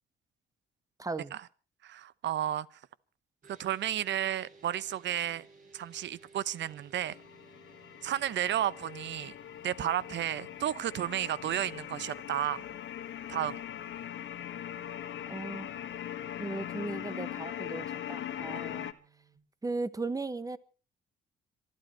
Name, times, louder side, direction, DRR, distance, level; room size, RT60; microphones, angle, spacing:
voice 1, 1.0-1.4 15.3-15.7 16.4-18.9 19.6-20.6, right 3 dB, 15° right, 1.3 m, -37 dB
voice 2, 1.8-2.7 3.5-5.5 5.7-7.1 8.0-9.3 9.6-12.7 13.3-13.6, right 11 dB, 65° right, 0.8 m, -32 dB
sound 1, 3.4-19.4, right 4 dB, 45° right, 6.8 m, -61 dB
sound 2, 7.1-18.9, left 11 dB, 70° left, 1.4 m, -41 dB
26.0 x 12.0 x 4.4 m
cardioid pair, 90°, 20 cm